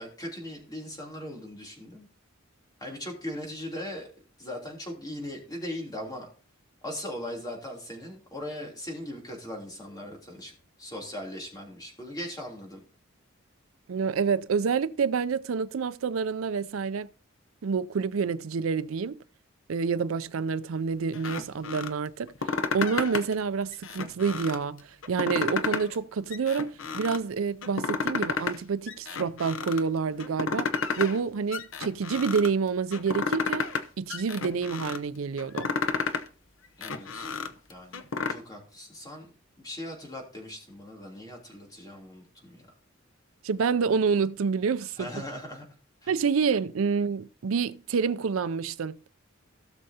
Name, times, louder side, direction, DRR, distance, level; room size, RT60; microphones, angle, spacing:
voice 1, 0.0-2.1 2.8-4.1 4.4-6.3 6.8-10.5 10.8-12.8 36.8-37.3 37.7-38.0 38.3-39.3 39.6-42.7 45.0-45.6 46.0-46.1, left 1 dB, 20° left, 3.1 m, -39 dB
voice 2, 13.9-17.1 17.6-19.2 19.7-30.7 31.0-33.7 34.0-35.7 43.4-45.1 46.1-49.0, right 5 dB, 80° right, 0.5 m, -28 dB
sound 1, 21.1-21.9 22.3-23.3 23.7-24.6 25.0-26.0 26.3-27.2 27.6-28.6 28.9-29.8 30.2-31.2 31.5-32.5 32.9-33.8 34.1-35.0 35.4-36.3 36.6-38.3, left 4 dB, 70° left, 0.9 m, -31 dB
17.0 x 6.5 x 2.8 m
head